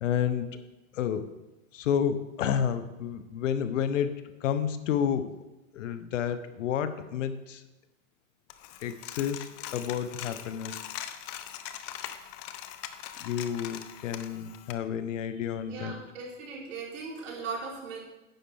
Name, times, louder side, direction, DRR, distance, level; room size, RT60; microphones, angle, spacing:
voice 1, 0.0-0.6 0.9-1.3 1.7-5.4 5.7-7.6 8.8-10.8 13.2-16.0, left 8 dB, 65° left, 11 dB, 1.0 m, -30 dB
Coin (dropping), 8.5-14.7, left 11 dB, 25° left, 0.4 m, -41 dB
voice 2, 15.6-18.0, right 4 dB, 65° right, -3 dB, 4.1 m, -38 dB
10.0 x 9.9 x 3.6 m, 1.0 s
hypercardioid pair, 135°, 40 cm